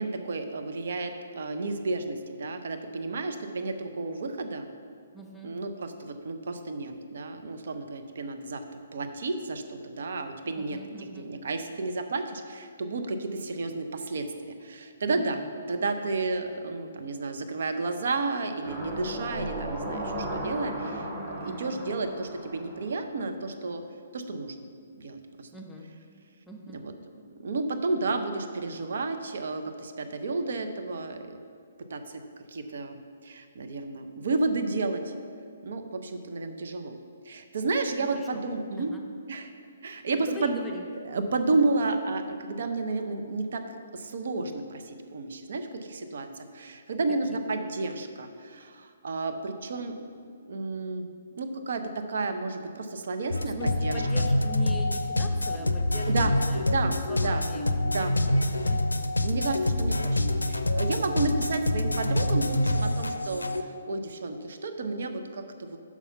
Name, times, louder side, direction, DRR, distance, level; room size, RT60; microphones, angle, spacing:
voice 1, 0.0-4.7 5.4-10.8 11.2-14.3 14.6-15.4 15.7-23.8 24.1-24.5 25.0-25.5 26.7-26.9 27.4-31.4 31.9-32.2 32.5-35.1 35.6-37.0 37.2-38.9 39.3-39.5 39.8-40.6 41.0-43.6 43.9-50.0 50.4-51.1 51.4-53.5 53.8-53.9 56.1-56.3 56.7-57.4 57.9-58.1 59.2-65.8, right 3 dB, 60° right, 7 dB, 0.6 m, -31 dB
voice 2, 5.1-5.6 10.6-11.3 15.1-15.5 21.4-21.8 25.5-25.9 26.5-26.8 38.0-38.4 38.8-39.0 40.0-40.8 47.3-47.4 53.4-56.6 57.1-57.6 58.2-59.3, left 1 dB, 5° left, 0 dB, 0.8 m, -43 dB
sound 1, 18.6-23.5 23.9-24.0, right 1 dB, 20° right, 1.5 m, -36 dB
sound 2, 53.3-63.6, left 1 dB, 90° left, 0.4 m, -26 dB
6.0 x 5.6 x 5.5 m, 2.3 s
figure-of-eight pair, 130°, 0 cm